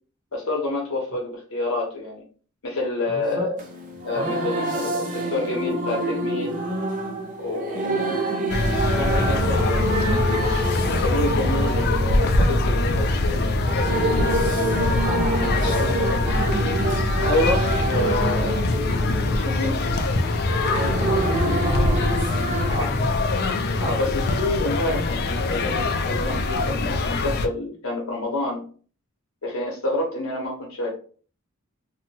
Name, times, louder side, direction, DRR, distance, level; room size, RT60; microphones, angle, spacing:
voice 1, 0.3-2.2 2.6-3.6 4.0-6.5 7.4-7.9 8.9-10.0 11.0-13.5 17.2-18.7 19.3-19.9 22.7-22.9 23.8-28.7 29.4-30.9, left 2 dB, 70° left, -1 dB, 0.9 m, -28 dB
voice 2, 3.1-3.5 11.1-11.9 14.7-16.5 21.6-22.1 22.6-23.1, equal, 20° right, -1 dB, 0.9 m, -33 dB
sound 1, 3.6-22.7, right 1 dB, 40° right, 0.6 m, -27 dB
sound 2, 8.5-27.5, left 2 dB, 50° left, 0.3 m, -23 dB
2.8 x 2.2 x 2.7 m, 0.40 s
head